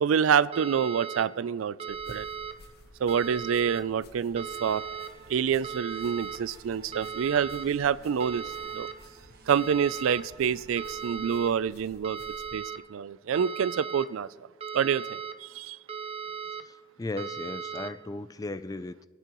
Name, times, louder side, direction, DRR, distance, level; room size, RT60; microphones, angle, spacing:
voice 1, 0.0-2.3 3.0-4.8 5.3-8.4 8.7-8.9 9.5-12.2 12.5-12.6 12.9-14.3 14.7-15.8, right 7 dB, 85° right, 18 dB, 0.4 m, -27 dB
sound 1, 0.5-1.2 1.8-2.5 3.1-3.8 4.4-5.1 5.6-6.4 6.9-7.6 8.2-8.9 9.5-10.2 10.8-11.5 12.0-12.8 13.3-14.1 14.6-15.3 15.9-16.6 17.2-17.9, right 6 dB, 30° right, 0.6 m, -37 dB
sound 2, 1.9-12.6, left 2 dB, 50° left, 0.8 m, -54 dB
sound 3, 4.3-11.1, right 4 dB, 50° right, 1.4 m, -55 dB
voice 2, 16.4-19.1, left 2 dB, 20° left, 13 dB, 0.4 m, -37 dB
25.0 x 9.3 x 3.0 m, 1.3 s
head